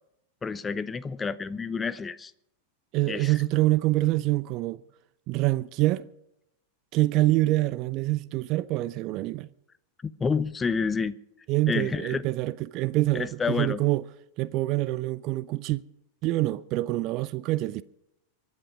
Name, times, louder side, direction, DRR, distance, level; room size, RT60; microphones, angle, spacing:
voice 1, 0.4-2.3 3.1-3.3 10.0-11.1 11.7-12.2 13.1-13.8, left 5 dB, 15° left, 0.6 m, -29 dB
voice 2, 2.9-4.8 5.3-6.1 6.9-9.5 11.5-14.0 14.4-15.8 16.2-17.8, right 18 dB, 40° right, 0.5 m, -26 dB
24.0 x 9.7 x 4.9 m
figure-of-eight pair, 90°, 0 cm